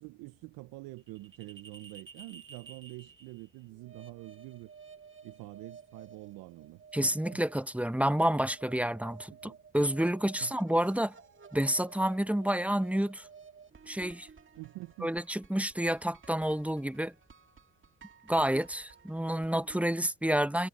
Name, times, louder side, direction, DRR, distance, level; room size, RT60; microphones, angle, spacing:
voice 1, 0.0-4.7 5.2-7.4 9.3-9.6 10.4-10.6 14.6-15.1 18.4-18.5, right 21 dB, 80° right, 1.0 m, -46 dB
sound 1, 1.0-19.9, right 6 dB, 35° right, 2.3 m, -54 dB
voice 2, 6.9-11.1 11.5-13.3 13.9-14.3 15.0-17.1 18.3-20.7, right 1 dB, 5° right, 1.2 m, -29 dB
hypercardioid pair, 55°, 35 cm